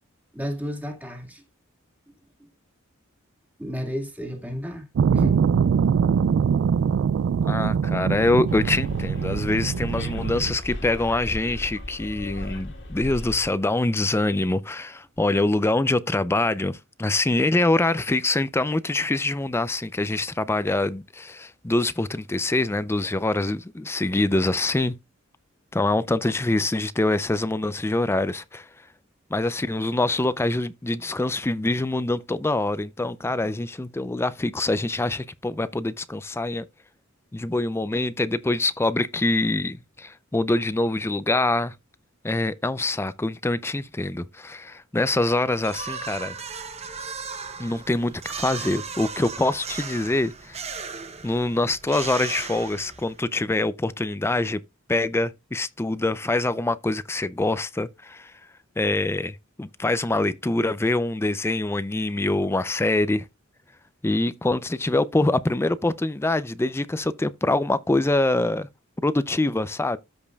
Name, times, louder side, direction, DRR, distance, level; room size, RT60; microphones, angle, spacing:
voice 1, 0.3-1.4 2.1-2.2 2.4-2.5 3.6-4.9 5.1-5.4, equal, 10° right, 2.1 m, -32 dB
sound 1, 5.0-10.6, right 7 dB, 60° right, 0.3 m, -23 dB
voice 2, 7.4-25.0 25.7-28.7 29.3-36.7 37.3-41.7 42.2-46.4 47.6-50.6 51.2-54.6 54.9-58.3 58.8-63.2 64.0-68.7 69.0-70.0, left 2 dB, 10° left, 0.4 m, -24 dB
Bus, 8.5-13.5, left 1 dB, 60° left, 2.0 m, -36 dB
sound 2, 45.6-53.3, right 5 dB, 30° right, 0.9 m, -36 dB
13.5 x 5.2 x 2.3 m
head